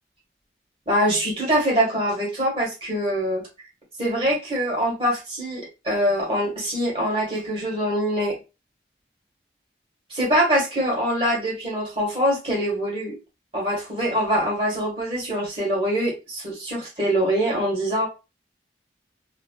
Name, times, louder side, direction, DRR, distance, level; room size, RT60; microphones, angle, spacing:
voice 1, 0.9-3.4 4.0-8.4 10.1-13.1 13.5-18.1, equal, 30° right, -3 dB, 1.5 m, -24 dB
3.1 x 2.7 x 2.3 m, 0.28 s
head